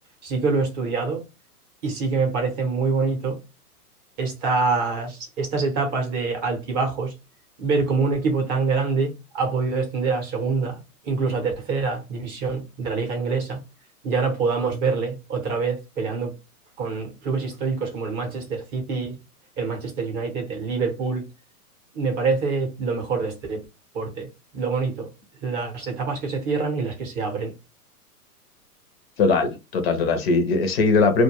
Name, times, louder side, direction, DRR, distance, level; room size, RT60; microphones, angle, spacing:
voice 1, 0.2-1.2 1.8-3.4 4.2-7.1 7.6-10.8 11.0-13.6 14.0-16.3 16.8-19.2 19.6-21.3 21.9-23.6 23.9-25.1 25.4-27.5, right 4 dB, 25° right, 0.6 m, -25 dB
voice 2, 29.2-31.2, left 4 dB, 40° left, 0.6 m, -20 dB
2.2 x 2.1 x 2.9 m
hypercardioid pair, 130°, 46 cm